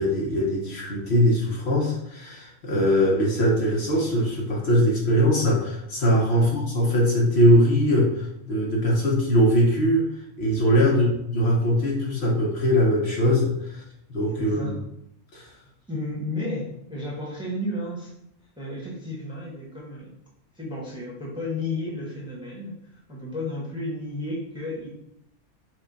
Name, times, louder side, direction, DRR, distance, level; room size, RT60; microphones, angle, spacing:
voice 1, 0.0-13.8 14.1-14.7 15.3-15.5, equal, 55° left, -2 dB, 1.2 m, -21 dB
voice 2, 14.4-14.8 15.9-18.1 18.6-20.1 20.5-22.8 23.1-24.9, left 1 dB, 5° right, -4 dB, 1.0 m, -32 dB
5.9 x 2.2 x 4.0 m, 0.77 s
omnidirectional pair, 1.4 m